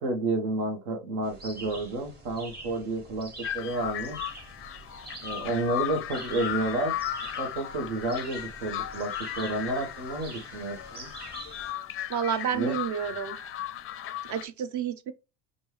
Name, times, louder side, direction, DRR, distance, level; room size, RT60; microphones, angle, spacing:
voice 1, 0.0-3.3 3.5-4.2 5.2-6.9 7.4-11.1 12.5-12.7 13.1-13.2, right 2 dB, 75° right, 1.3 m, -30 dB
sound 1, 1.2-11.7, right 2 dB, 20° right, 1.5 m, -45 dB
sound 2, 3.4-14.4, left 12 dB, 35° left, 0.4 m, -36 dB
voice 2, 12.1-13.4 14.3-15.1, right 8 dB, 45° right, 0.6 m, -30 dB
5.2 x 2.6 x 3.2 m
supercardioid pair, 95°, 43 cm